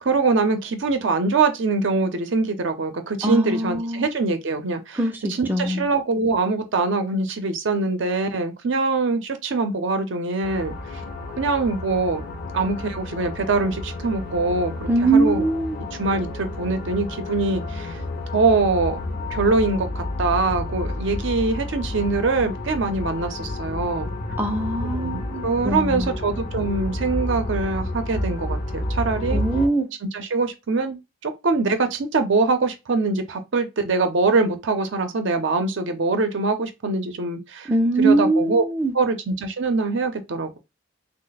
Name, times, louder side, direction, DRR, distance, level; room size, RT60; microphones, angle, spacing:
voice 1, 0.0-5.0 5.3-11.0 11.4-12.3 12.5-15.4 16.0-18.0 18.3-19.0 19.3-24.1 25.0-29.4 30.0-37.7 38.0-38.6 38.9-40.6, right 3 dB, 60° right, 0.5 m, -23 dB
voice 2, 3.2-4.1 4.9-5.8 14.9-15.8 24.4-26.2 29.3-29.9 37.7-38.9, right 2 dB, 10° right, 0.4 m, -22 dB
sound 1, 10.4-29.7, left 2 dB, 45° left, 0.5 m, -30 dB
3.1 x 2.0 x 3.9 m
head